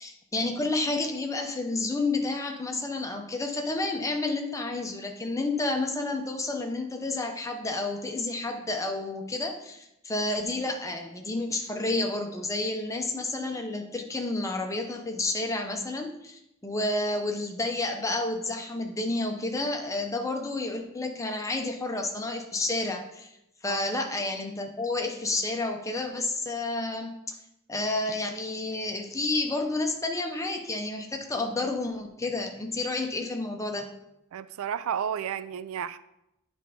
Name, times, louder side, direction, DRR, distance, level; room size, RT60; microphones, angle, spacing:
voice 1, 0.0-23.3 23.6-27.1 27.7-33.9, left 2 dB, 15° left, 4 dB, 0.7 m, -30 dB
voice 2, 34.3-36.0, right 8 dB, 75° right, 14 dB, 0.3 m, -32 dB
9.0 x 3.4 x 5.0 m, 0.85 s
head